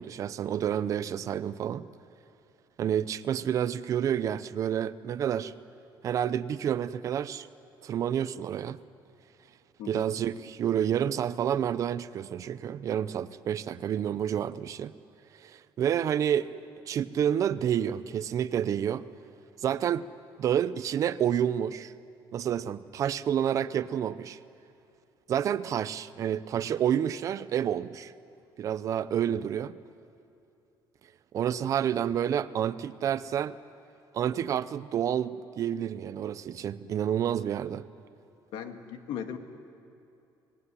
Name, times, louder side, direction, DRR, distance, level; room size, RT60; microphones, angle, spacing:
voice 1, 0.0-1.9 2.8-5.5 6.0-7.5 7.8-8.8 9.9-14.9 15.4-16.5 16.9-19.0 19.6-20.0 20.4-21.9 22.3-24.4 25.3-28.1 28.6-29.8 31.3-33.6 34.1-37.9, right 9 dB, 40° right, 13 dB, 0.7 m, -29 dB
voice 2, 38.5-39.4, left 8 dB, 80° left, 6 dB, 1.9 m, -38 dB
25.5 x 19.0 x 9.9 m, 2.7 s
cardioid pair, 175°, 8 cm